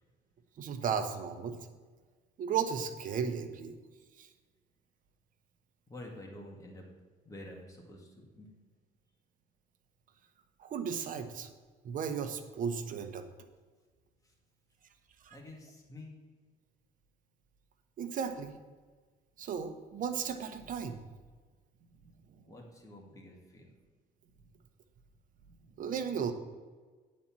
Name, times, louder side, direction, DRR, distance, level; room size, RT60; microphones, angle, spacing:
voice 1, 0.6-1.6 2.4-3.8 4.2-4.3 10.6-11.5 11.8-13.3 15.2-15.4 18.0-18.5 19.4-21.0 25.8-26.3, right 7 dB, 55° right, 8 dB, 0.9 m, -35 dB
voice 2, 5.9-6.9 7.2-8.5 14.2-14.3 15.3-16.1 22.5-23.7, left 1 dB, 20° left, 0 dB, 2.1 m, -49 dB
9.2 x 4.3 x 7.3 m, 1.4 s
cardioid pair, 110°, 17 cm